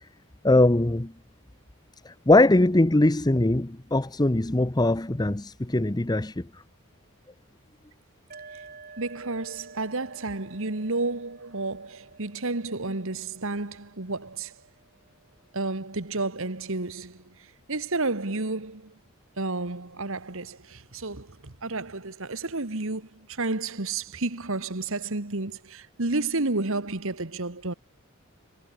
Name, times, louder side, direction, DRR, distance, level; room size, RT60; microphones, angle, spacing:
voice 1, 0.4-1.1 2.0-6.5, left 2 dB, 20° left, 0.8 m, -21 dB
sound 1, 8.3-15.8, right 4 dB, 40° right, 7.0 m, -51 dB
voice 2, 9.0-14.6 15.5-18.9 19.4-27.7, right 3 dB, 60° right, 1.8 m, -31 dB
head